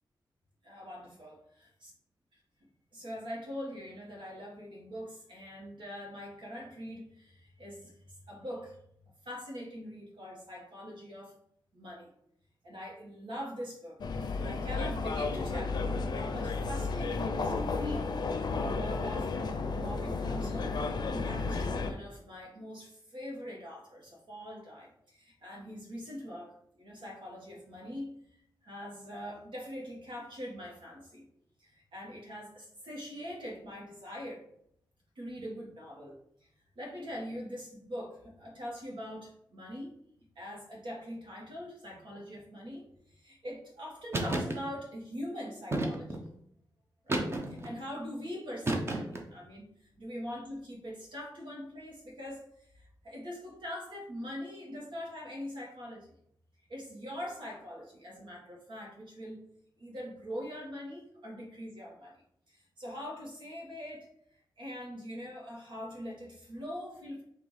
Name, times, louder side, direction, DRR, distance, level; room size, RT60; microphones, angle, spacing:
voice 1, 0.6-1.4 1.8-1.9 2.9-8.8 9.2-11.3 11.7-12.1 12.6-19.3 19.7-20.7 21.1-28.1 28.6-31.3 31.6-34.5 35.1-36.2 36.7-39.9 40.3-46.2 47.0-49.6 50.0-56.1 56.7-59.4 59.8-64.1 64.6-67.2, equal, 75° right, -3 dB, 1.7 m, -43 dB
sound 1, 14.0-21.9, left 4 dB, 60° left, 0.5 m, -33 dB
sound 2, 44.1-44.6 45.7-46.3 47.1-47.7 48.6-49.3, right 1 dB, 30° right, 0.8 m, -31 dB
4.5 x 2.9 x 4.0 m, 0.72 s
cardioid pair, 85°, 8 cm